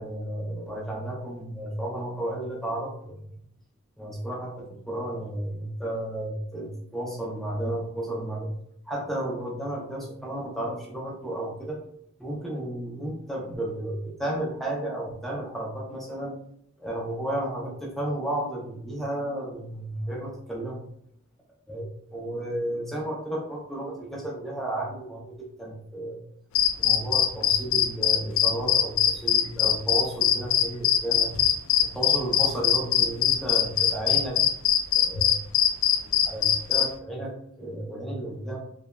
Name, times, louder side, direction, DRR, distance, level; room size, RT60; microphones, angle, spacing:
voice 1, 0.0-3.3 4.0-8.5 8.8-11.8 12.2-16.3 16.8-20.8 21.7-26.2 26.8-31.3 31.8-34.4 35.0-35.4 36.2-38.6, right 1 dB, ahead, -3 dB, 0.5 m, -33 dB
sound 1, 26.5-36.9, left 10 dB, 80° left, 0.3 m, -21 dB
3.2 x 2.0 x 2.2 m, 0.69 s
head